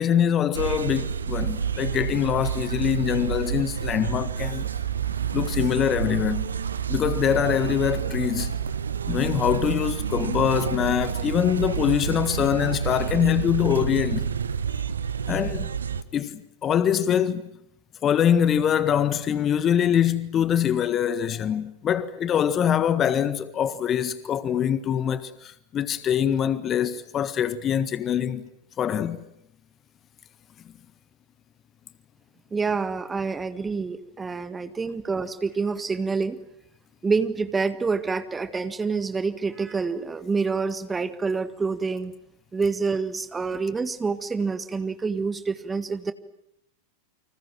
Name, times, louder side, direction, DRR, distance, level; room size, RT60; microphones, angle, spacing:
voice 1, 0.0-4.7 5.3-6.5 6.9-8.6 9.1-14.3 15.3-15.7 16.1-17.5 18.0-28.5 28.8-29.2, left 9 dB, 25° left, 1.6 m, -24 dB
sound 1, 0.5-16.0, right 7 dB, 70° right, 1.3 m, -29 dB
voice 2, 32.5-36.4 37.0-42.1 42.5-46.1, right 4 dB, 15° right, 1.9 m, -27 dB
30.0 x 26.0 x 7.6 m
figure-of-eight pair, 90°, 0 cm